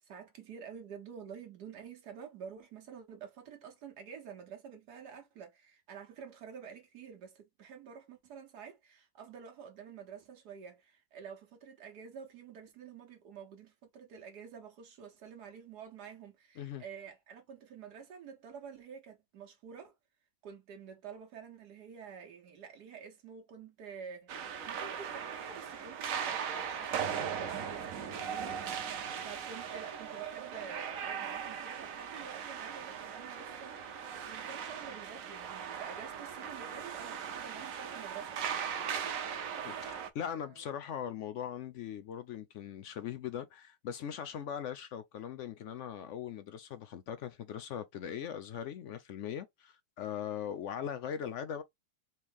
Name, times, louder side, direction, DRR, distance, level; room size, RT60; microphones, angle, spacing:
voice 1, 0.0-19.9 20.4-28.9 29.2-38.5 40.4-40.6, right 7 dB, 80° right, 1.5 m, -49 dB
sound 1, 24.3-40.1, right 7 dB, 60° right, 1.1 m, -39 dB
voice 2, 39.6-51.6, left 9 dB, 70° left, 0.7 m, -40 dB
4.4 x 3.1 x 3.5 m
omnidirectional pair, 1.7 m